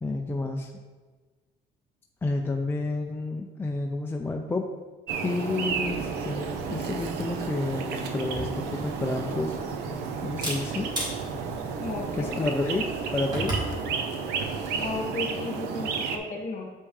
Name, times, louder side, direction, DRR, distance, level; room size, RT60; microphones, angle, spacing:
voice 1, 0.0-0.7 2.2-4.6 5.2-9.8 10.2-10.9 12.1-12.9 13.1-13.7, left 2 dB, 15° left, 2 dB, 0.5 m, -30 dB
sound 1, 5.1-16.2, right 5 dB, 85° right, 0.8 m, -32 dB
sound 2, 5.7-12.6, right 4 dB, 70° right, 1.1 m, -45 dB
Camera, 8.2-13.7, right 1 dB, 25° right, 2.2 m, -37 dB
voice 2, 11.8-12.5 14.8-16.7, left 3 dB, 45° left, 0 dB, 1.7 m, -34 dB
7.5 x 5.5 x 3.2 m, 1.4 s
cardioid pair, 110°, 17 cm